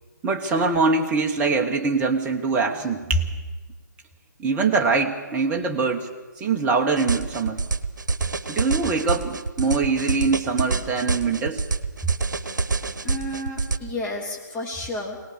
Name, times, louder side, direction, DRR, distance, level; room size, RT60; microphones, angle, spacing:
voice 1, 0.2-3.3 4.4-6.1 6.4-7.6 8.5-11.6, right 4 dB, 15° right, 2 dB, 1.3 m, -23 dB
sound 1, 7.0-13.8, right 4 dB, 70° right, 1.2 m, -26 dB
voice 2, 13.0-15.2, left 1 dB, 10° left, -3 dB, 2.8 m, -31 dB
21.0 x 19.0 x 6.8 m, 1.3 s
figure-of-eight pair, 145°, 10 cm